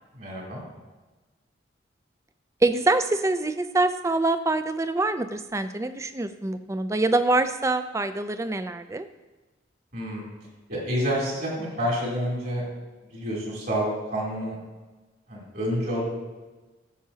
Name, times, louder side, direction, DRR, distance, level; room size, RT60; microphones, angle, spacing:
voice 1, 0.1-0.6 9.9-10.2 10.7-12.6 13.1-13.9 14.1-14.6 15.3-16.0, equal, 50° right, -5 dB, 3.1 m, -28 dB
voice 2, 2.6-9.1, right 2 dB, 15° right, 10 dB, 0.3 m, -25 dB
15.0 x 6.0 x 2.8 m, 1.2 s
head